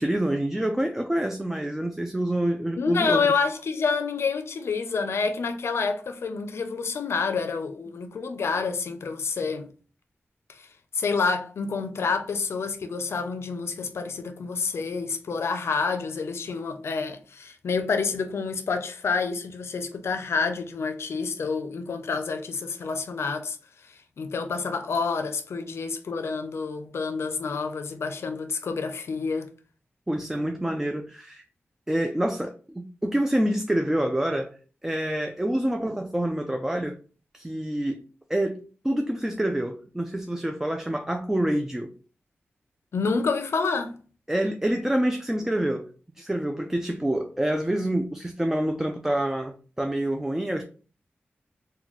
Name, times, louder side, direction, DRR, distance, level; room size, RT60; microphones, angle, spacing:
voice 1, 0.0-3.2 30.1-31.4 31.9-34.5 34.8-37.0 37.3-38.0 38.3-38.6 38.8-41.9 44.3-45.8 46.2-50.6, right 1 dB, 10° right, 0.3 m, -27 dB
voice 2, 2.8-9.7 10.5-10.7 10.9-23.6 24.2-29.5 42.9-44.0, left 4 dB, 85° left, 0.5 m, -28 dB
4.0 x 2.2 x 2.9 m
wide cardioid pair, 105°, 4 cm